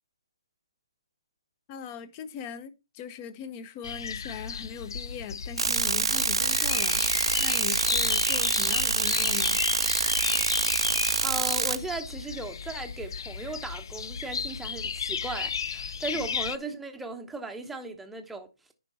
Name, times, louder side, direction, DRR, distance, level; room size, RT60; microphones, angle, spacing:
voice 1, 1.7-7.1 7.4-9.6, left 8 dB, 25° left, 0.8 m, -40 dB
sound 1, 3.8-16.6, left 6 dB, 55° left, 0.4 m, -33 dB
sound 2, 5.6-11.8, right 5 dB, 70° right, 0.6 m, -26 dB
voice 2, 11.2-18.5, right 2 dB, 5° right, 0.9 m, -37 dB
10.5 x 4.5 x 4.0 m
figure-of-eight pair, 150°, 3 cm